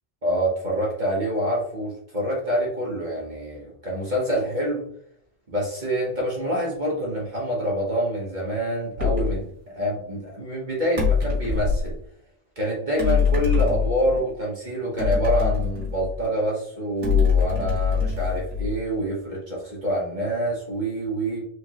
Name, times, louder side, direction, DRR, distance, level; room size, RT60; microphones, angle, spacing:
voice 1, 0.2-4.8 5.5-9.5 9.7-12.0 12.6-21.5, right 1 dB, 35° right, -4 dB, 1.2 m, -26 dB
sound 1, 9.0-9.4 11.0-11.9 13.0-14.2 15.0-16.3 17.0-18.9, left 6 dB, 85° right, 2.1 m, -23 dB
4.8 x 3.3 x 2.9 m, 0.66 s
omnidirectional pair, 1.3 m